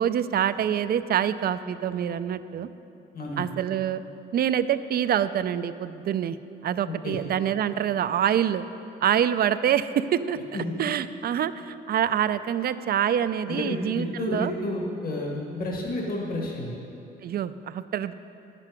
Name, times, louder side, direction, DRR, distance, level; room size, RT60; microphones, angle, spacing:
voice 1, 0.0-2.7 3.4-4.0 4.3-6.4 6.6-8.6 9.0-14.5 17.2-18.1, right 9 dB, 50° right, 13 dB, 0.4 m, -26 dB
voice 2, 3.1-3.5 6.8-7.2 10.5-10.6 13.5-16.7, left 1 dB, 50° left, -1 dB, 1.6 m, -31 dB
10.5 x 7.5 x 5.1 m, 2.8 s
cardioid pair, 90°, 20 cm